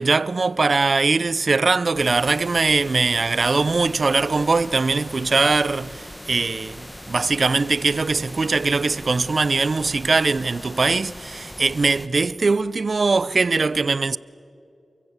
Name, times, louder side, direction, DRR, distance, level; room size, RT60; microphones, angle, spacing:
voice 1, 0.0-14.2, right 3 dB, 55° right, 0.5 m, -21 dB
sound 1, 1.9-12.1, equal, 5° left, 1.4 m, -40 dB
28.5 x 22.5 x 8.1 m
cardioid pair, 65°, 0 cm